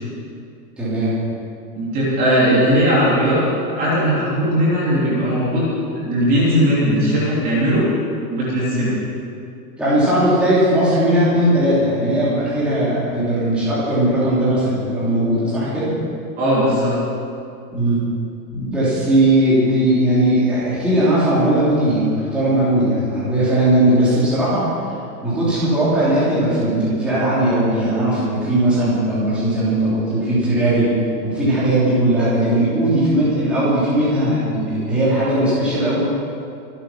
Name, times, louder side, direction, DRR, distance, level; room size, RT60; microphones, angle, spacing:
voice 1, 0.8-1.1 9.8-15.9 17.7-18.0 18.5-24.7 25.2-30.9 31.2-36.0, right 1 dB, ahead, -11 dB, 3.1 m, -18 dB
voice 2, 1.7-3.4 3.7-7.9 8.3-9.0 16.4-17.0, equal, 20° right, -7 dB, 3.1 m, -18 dB
24.5 x 9.1 x 5.9 m, 2.5 s
supercardioid pair, 180°, 49 cm